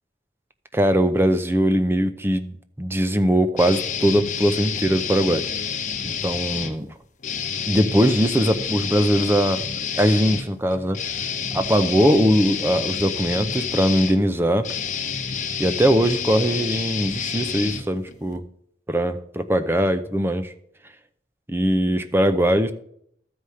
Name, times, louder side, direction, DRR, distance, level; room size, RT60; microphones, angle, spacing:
voice 1, 0.7-5.5 6.0-6.9 7.7-9.6 9.9-11.0 11.5-14.7 15.6-18.4 18.9-20.5 21.5-22.7, equal, 15° right, 9 dB, 0.5 m, -21 dB
sound 1, 3.6-6.7 7.2-18.4, left 7 dB, 45° left, 1.0 m, -29 dB
13.0 x 4.9 x 5.6 m, 0.68 s
head